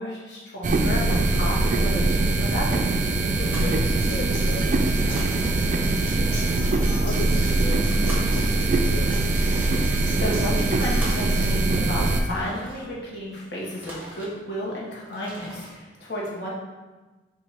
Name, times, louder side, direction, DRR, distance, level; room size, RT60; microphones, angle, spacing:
voice 1, 0.0-2.9 9.9-16.5, left 1 dB, 70° left, -5 dB, 1.2 m, -32 dB
sound 1, 0.6-12.2, right 2 dB, 45° right, 0.3 m, -22 dB
sound 2, 3.3-4.6 4.8-5.9 6.3-13.1 13.5-14.7 15.0-15.8, right 1 dB, 10° right, 0.9 m, -43 dB
voice 2, 3.4-6.4 6.9-9.4, left 3 dB, 45° left, 0 dB, 0.3 m, -37 dB
Acoustic guitar, 3.6-11.6, equal, 30° left, 1.4 m, -39 dB
4.1 x 2.7 x 4.4 m, 1.3 s
head